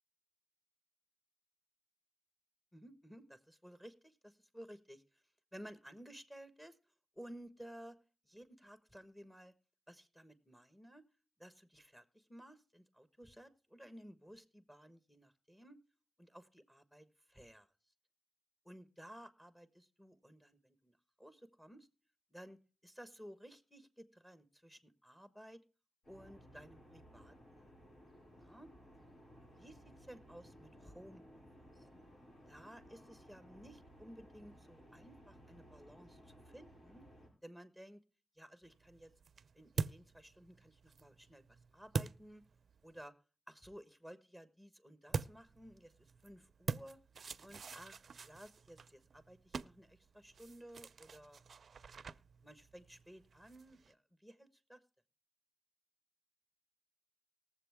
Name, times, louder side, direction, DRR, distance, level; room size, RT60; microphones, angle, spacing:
voice 1, 2.7-5.2 5.5-6.8 7.2-8.0 8.3-9.5 9.9-11.0 11.4-15.8 16.2-17.7 18.6-21.9 22.3-22.6 22.8-25.6 26.1-27.6 28.4-28.7 29.6-31.4 31.7-31.9 32.5-37.0 37.4-38.0 38.4-39.1 39.5-42.4 42.8-43.1 43.5-47.0 47.4-51.4 52.4-54.8, equal, 10° left, 11 dB, 1.3 m, -56 dB
sound 1, 26.0-37.3, equal, 65° left, 8.0 m, -59 dB
sound 2, 38.6-43.0 45.1-53.9, right 5 dB, 70° right, 0.5 m, -45 dB
19.5 x 7.3 x 3.5 m, 0.37 s
cardioid pair, 70°, 0 cm